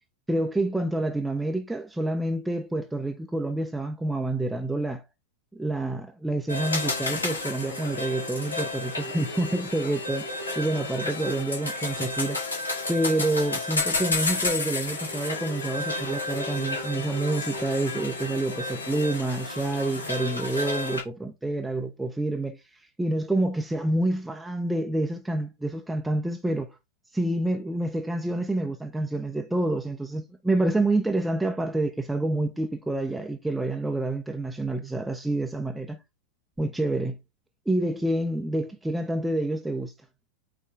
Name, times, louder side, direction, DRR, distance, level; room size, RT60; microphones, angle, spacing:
voice 1, 0.3-5.0 5.5-10.3 10.6-12.4 12.9-22.6 23.0-26.7 27.1-36.0 36.6-37.2 37.7-39.9, right 2 dB, 5° right, 0.8 m, -28 dB
sound 1, 6.5-21.0, left 2 dB, 75° left, 2.6 m, -31 dB
8.2 x 3.6 x 3.5 m
figure-of-eight pair, 90°, 0 cm